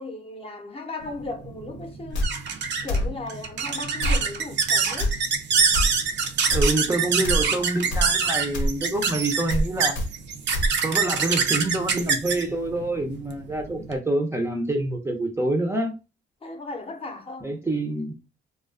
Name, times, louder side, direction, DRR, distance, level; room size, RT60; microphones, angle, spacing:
voice 1, 0.0-2.3 2.8-5.2 16.4-17.6, left 2 dB, 30° left, 0.6 m, -36 dB
sound 1, 1.1-14.0, right 6 dB, 65° right, 0.5 m, -25 dB
sound 2, 2.1-2.3 2.9-3.1 4.0-4.2 5.0-5.1 5.7-5.9 6.5-6.7 7.2-7.4 7.9-8.1 8.5-8.7 9.5-9.7 9.9-10.1 10.5-10.7, equal, 75° left, 0.7 m, -23 dB
voice 2, 6.5-10.0 10.8-15.9 17.4-18.1, right 2 dB, 15° right, 0.5 m, -26 dB
2.3 x 2.3 x 2.3 m
cardioid pair, 90°, 20 cm